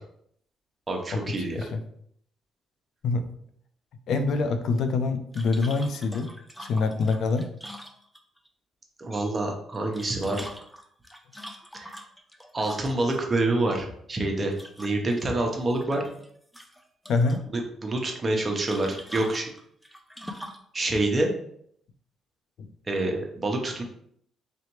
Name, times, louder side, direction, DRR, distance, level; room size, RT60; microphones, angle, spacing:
voice 1, 0.9-1.6 9.0-10.5 11.7-12.0 12.5-16.0 17.5-19.5 20.7-21.3 22.9-23.8, right 2 dB, 30° right, 2 dB, 0.9 m, -27 dB
voice 2, 4.1-6.3 6.7-7.5 17.1-17.4, left 4 dB, 70° left, 8 dB, 0.4 m, -25 dB
sound 1, 5.3-8.5 9.7-13.2 14.5-15.2 15.6-16.3 16.5-17.4 18.7-20.7, equal, 5° left, 0.5 m, -44 dB
3.9 x 3.2 x 3.1 m, 0.67 s
cardioid pair, 90°, 0 cm